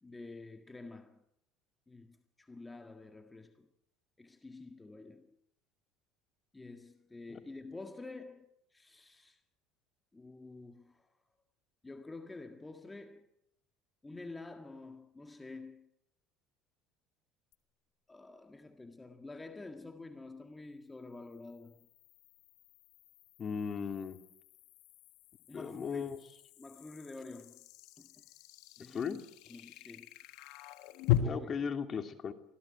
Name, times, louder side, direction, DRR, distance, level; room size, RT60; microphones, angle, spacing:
voice 1, 0.0-1.2 1.9-3.7 4.2-5.3 6.5-9.4 10.1-11.1 11.8-13.3 14.0-15.9 18.1-21.9 25.5-26.1 26.6-27.7 28.0-28.2 28.8-29.2 29.5-30.2 31.1-31.5, left 3 dB, 15° left, 1.8 m, -49 dB
sound 1, 17.5-17.6 21.0-31.2, left 18 dB, 70° left, 1.7 m, -40 dB
voice 2, 23.4-24.2 25.5-26.2 28.9-29.2 31.2-32.3, left 6 dB, 35° left, 2.8 m, -36 dB
25.0 x 16.5 x 9.0 m
supercardioid pair, 95°, 0 cm